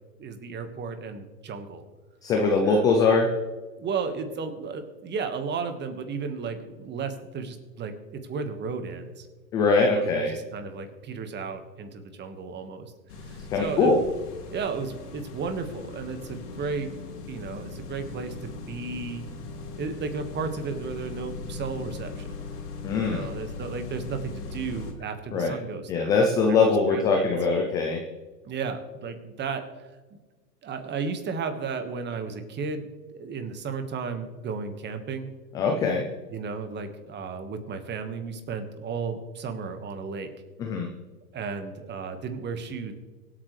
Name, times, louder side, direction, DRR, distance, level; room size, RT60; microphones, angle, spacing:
voice 1, 0.2-1.8 2.6-2.9 3.8-9.3 9.8-12.9 13.2-14.0 14.5-16.9 17.3-19.2 19.8-22.3 23.0-26.1 26.5-27.3 28.4-30.2 30.6-35.3 36.3-40.3 41.3-42.9, right 5 dB, 20° right, 8 dB, 1.6 m, -34 dB
voice 2, 2.2-3.3 9.5-10.3 13.5-14.0 22.8-23.3 25.3-25.6 25.9-28.0 35.5-36.1 40.6-40.9, left 4 dB, 10° left, 2 dB, 0.3 m, -22 dB
sound 1, 13.1-24.9, left 4 dB, 70° left, 3.4 m, -39 dB
24.5 x 8.4 x 3.3 m, 1.3 s
hypercardioid pair, 115°, 48 cm